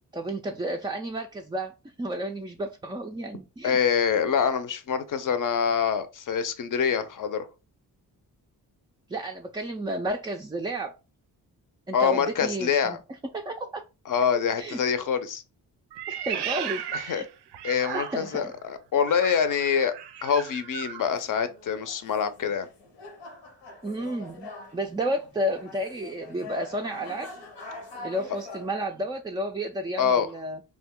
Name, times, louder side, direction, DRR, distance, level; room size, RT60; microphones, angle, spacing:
voice 1, 0.1-3.8 9.1-10.9 11.9-13.0 13.3-13.8 14.6-14.8 16.1-17.3 17.9-18.5 23.8-27.3 28.0-30.6, right 1 dB, 10° right, 0.3 m, -32 dB
voice 2, 3.6-7.5 11.9-13.0 14.1-15.4 16.9-17.2 17.6-19.9 20.2-22.7 30.0-30.3, left 7 dB, 50° left, 0.6 m, -25 dB
Meow, 15.9-18.5 19.0-21.1, right 10 dB, 75° right, 0.5 m, -35 dB
sound 1, 21.0-28.7, left 2 dB, 85° left, 0.9 m, -44 dB
2.4 x 2.2 x 3.6 m
cardioid pair, 60°, 41 cm